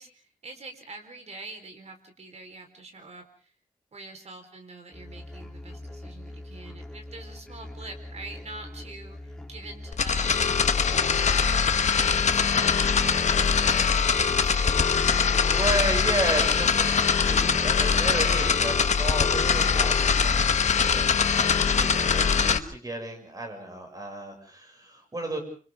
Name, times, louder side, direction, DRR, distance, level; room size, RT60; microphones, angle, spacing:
voice 1, 0.0-3.5 3.9-15.7 21.7-22.0, right 3 dB, 55° right, 5 dB, 4.4 m, -45 dB
sound 1, 4.9-22.4, left 1 dB, 5° left, 3.3 m, -42 dB
sound 2, 9.9-22.6, left 6 dB, 60° left, 1.1 m, -22 dB
voice 2, 15.4-25.4, right 1 dB, 25° right, 3 dB, 6.9 m, -33 dB
30.0 x 26.0 x 3.7 m, 0.40 s
wide cardioid pair, 140°, 14 cm